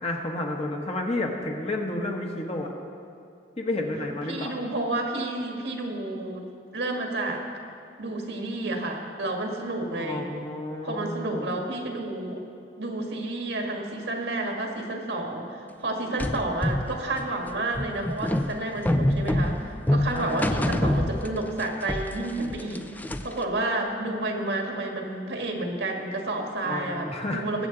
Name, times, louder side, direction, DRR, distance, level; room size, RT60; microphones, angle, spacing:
voice 1, 0.0-2.7 3.6-4.5 10.0-11.5 20.1-20.6 26.6-27.4, left 2 dB, 35° left, 1 dB, 1.3 m, -31 dB
voice 2, 4.3-6.4 6.7-7.5 8.0-10.3 10.8-12.4 12.8-27.7, right 2 dB, 75° right, 2 dB, 1.7 m, -30 dB
sound 1, 16.2-21.6 21.9-23.4, left 1 dB, 10° left, 0.4 m, -26 dB
20.5 x 7.9 x 3.9 m, 2.5 s
head